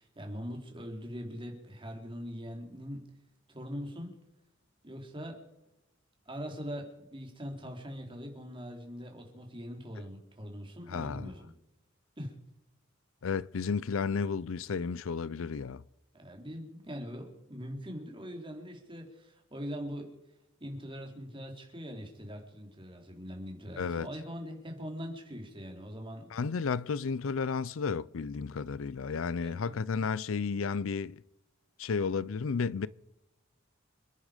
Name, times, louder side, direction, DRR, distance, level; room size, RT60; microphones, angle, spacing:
voice 1, 0.0-3.1 3.5-4.1 4.8-5.4 6.3-11.5 12.2-12.4 16.1-20.2 20.6-26.3 29.4-29.8, equal, 25° right, 3.5 m, -42 dB
voice 2, 10.9-11.3 13.2-15.8 23.8-24.1 26.3-31.2 31.8-32.9, left 5 dB, 75° left, 0.5 m, -32 dB
28.0 x 10.0 x 5.1 m
head